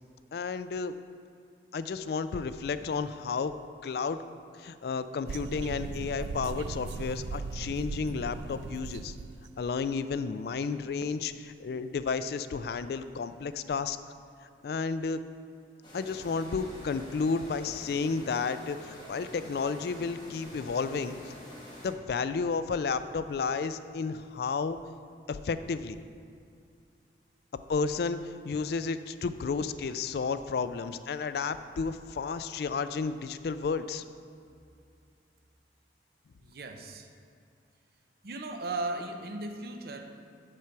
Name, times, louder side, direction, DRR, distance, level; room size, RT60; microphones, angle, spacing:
voice 1, 0.3-0.9 1.7-3.5 3.8-4.2 4.6-9.2 9.6-14.0 14.6-15.2 15.9-21.2 21.8-24.8 25.3-26.0 27.7-34.0, left 5 dB, 60° left, 12 dB, 0.3 m, -32 dB
sound 1, 5.3-9.6, right 4 dB, 80° right, 0.3 m, -38 dB
sound 2, 15.8-21.9, equal, 25° left, 1.9 m, -47 dB
voice 2, 36.4-37.1 38.2-40.0, right 2 dB, 55° right, 5 dB, 0.7 m, -36 dB
7.5 x 6.8 x 4.6 m, 2.4 s
head